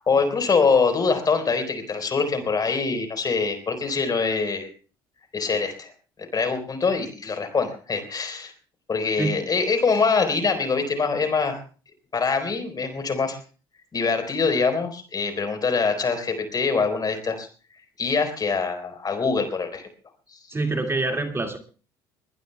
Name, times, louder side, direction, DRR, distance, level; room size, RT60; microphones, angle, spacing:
voice 1, 0.0-4.7 5.3-5.9 6.3-8.5 8.9-11.6 12.1-13.4 13.9-17.5 18.0-19.9 20.3-20.4, left 4 dB, 35° left, 7 dB, 4.3 m, -24 dB
voice 2, 20.5-21.6, right 2 dB, 20° right, 4 dB, 2.1 m, -25 dB
22.0 x 20.5 x 2.3 m, 0.37 s
hypercardioid pair, 55°, 12 cm